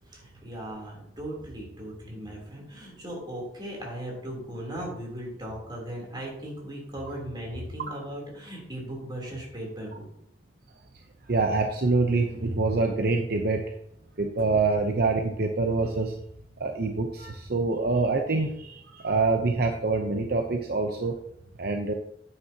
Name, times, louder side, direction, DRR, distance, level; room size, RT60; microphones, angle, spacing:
voice 1, 0.1-10.0, right 1 dB, 25° right, -2 dB, 3.4 m, -38 dB
voice 2, 11.3-13.6 14.2-16.1 16.6-21.2 21.6-21.9, right 3 dB, 60° right, 3 dB, 0.8 m, -25 dB
9.6 x 9.5 x 2.9 m, 0.72 s
head